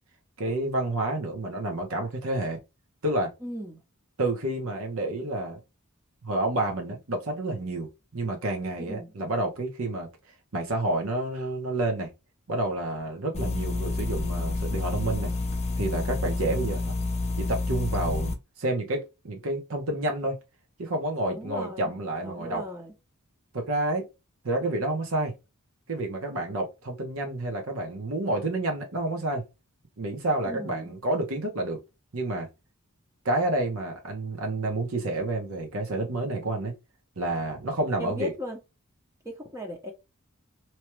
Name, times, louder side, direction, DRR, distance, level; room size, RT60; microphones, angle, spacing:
voice 1, 0.4-2.6 3.0-3.3 4.2-5.6 6.2-10.1 10.5-12.1 12.5-15.3 15.8-17.0 17.4-20.4 20.8-22.6 23.5-24.1 24.4-25.3 25.9-29.4 30.0-31.8 32.1-32.5 33.2-36.7 37.2-38.3, right 2 dB, 75° right, 0.9 m, -29 dB
voice 2, 3.4-3.8 8.8-9.1 21.2-21.9 22.2-22.9 30.4-30.9 38.0-38.6 39.2-39.9, left 1 dB, 15° right, 0.6 m, -37 dB
sound 1, 13.3-18.3, left 3 dB, 30° left, 0.5 m, -29 dB
3.0 x 2.3 x 2.9 m
head